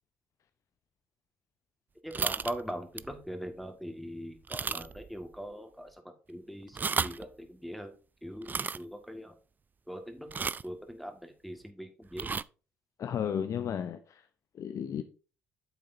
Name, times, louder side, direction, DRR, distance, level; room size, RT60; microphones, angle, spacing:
voice 1, 2.0-7.9 8.2-9.4 9.9-12.3, equal, ahead, 1.8 m, -41 dB
sound 1, 2.1-2.6 3.0-3.2 3.6-3.7 4.5-5.1 5.3-5.4 6.6-7.2 8.4-8.8 10.3-10.7 12.1-12.4, right 5 dB, 25° right, 0.3 m, -33 dB
voice 2, 13.0-14.3 14.5-15.0, left 8 dB, 50° left, 0.6 m, -33 dB
9.1 x 7.6 x 2.7 m
hypercardioid pair, 55°, 7 cm